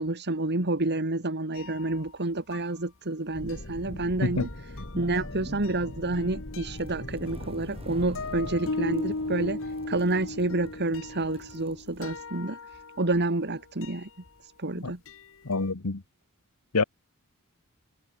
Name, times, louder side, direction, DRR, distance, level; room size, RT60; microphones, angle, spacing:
voice 1, 0.0-4.5 4.9-9.6 9.9-12.6 13.0-14.1 14.4-15.0, right 2 dB, 50° right, 2.1 m, -29 dB
sound 1, 1.5-2.1 2.5-2.6 3.5-13.5 13.8-14.3 14.9-15.7, left 2 dB, 65° left, 1.7 m, -38 dB
sound 2, 3.3-8.6, left 1 dB, 50° left, 2.7 m, -41 dB
sound 3, 6.6-12.2, right 1 dB, 25° right, 7.3 m, -47 dB
voice 2, 15.4-16.0 16.7-16.8, left 3 dB, 85° left, 1.3 m, -26 dB
head